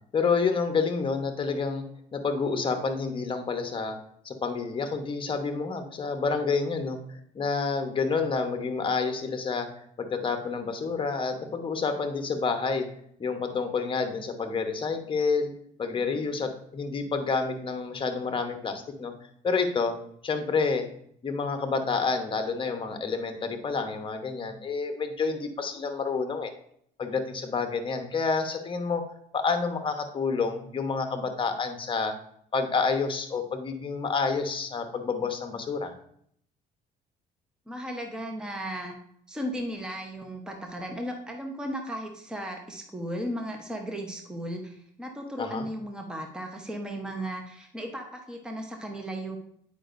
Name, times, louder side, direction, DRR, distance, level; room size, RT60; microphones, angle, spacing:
voice 1, 0.1-1.8 2.1-4.0 4.2-7.0 7.3-12.9 13.2-15.5 15.8-19.1 19.4-19.9 20.2-20.9 21.2-26.5 27.0-29.0 29.3-32.1 32.5-35.9 45.4-45.7, left 4 dB, 30° left, 6 dB, 1.0 m, -29 dB
voice 2, 37.7-39.0 39.3-49.4, equal, 5° right, 2 dB, 0.9 m, -35 dB
8.6 x 5.2 x 2.6 m, 0.67 s
cardioid pair, 110°, 17 cm